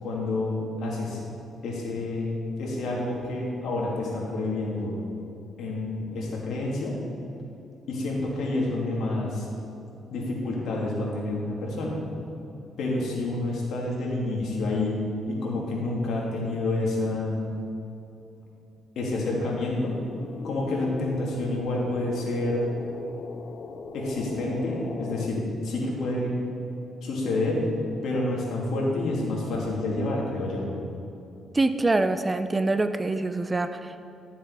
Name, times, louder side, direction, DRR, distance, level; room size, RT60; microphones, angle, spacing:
voice 1, 0.0-1.2 1.6-5.0 5.6-7.0 7.9-9.5 10.1-12.0 12.8-15.0 15.3-17.4 19.0-20.0 20.4-22.6 23.9-26.4 27.0-27.6 28.0-30.7, left 2 dB, 70° left, -3 dB, 2.6 m, -28 dB
sound 1, 19.2-25.3, left 4 dB, 50° left, 0.6 m, -40 dB
voice 2, 31.5-34.1, right 2 dB, 20° right, 10 dB, 0.5 m, -25 dB
12.5 x 7.3 x 4.8 m, 2.8 s
cardioid pair, 90°, 0 cm